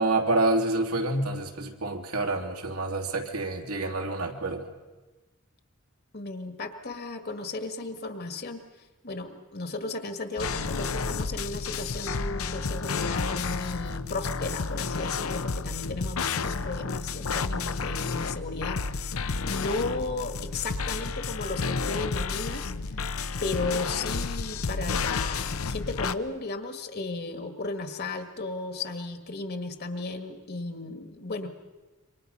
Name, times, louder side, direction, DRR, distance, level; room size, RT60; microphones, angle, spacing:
voice 1, 0.0-4.7, right 2 dB, 85° right, 2 dB, 3.1 m, -27 dB
voice 2, 6.1-8.6 9.0-19.2 19.4-22.7 23.4-31.5, left 3 dB, 45° left, 7 dB, 1.8 m, -35 dB
sound 1, 10.4-26.1, left 4 dB, 70° left, 0.8 m, -31 dB
27.0 x 24.5 x 5.6 m, 1.2 s
head